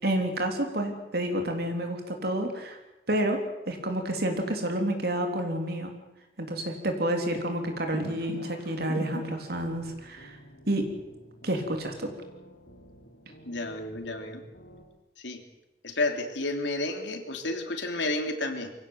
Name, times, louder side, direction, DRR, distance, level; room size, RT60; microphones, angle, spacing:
voice 1, 0.0-2.8 3.1-5.9 6.4-10.4 10.7-10.9 11.4-12.1, right 1 dB, 60° right, 4 dB, 3.6 m, -29 dB
sound 1, 7.9-14.8, equal, 55° left, 3.9 m, -44 dB
voice 2, 13.5-14.4 15.2-15.4 15.8-18.7, left 2 dB, 85° left, 4 dB, 3.2 m, -31 dB
24.0 x 16.5 x 8.0 m, 0.98 s
head